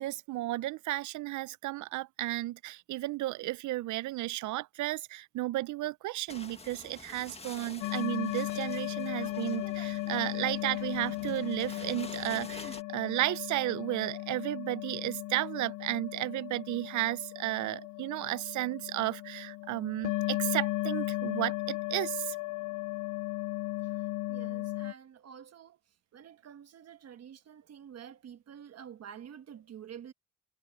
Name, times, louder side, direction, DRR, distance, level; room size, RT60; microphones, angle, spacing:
voice 1, 0.0-22.4, right 17 dB, 75° right, 0.6 m, -33 dB
sound 1, 6.3-12.8, left 3 dB, 20° left, 1.8 m, -48 dB
sound 2, 7.8-24.9, left 17 dB, 85° left, 0.6 m, -36 dB
voice 2, 24.3-25.8 26.1-30.1, right 8 dB, 55° right, 1.3 m, -48 dB
cardioid pair, 90°, 30 cm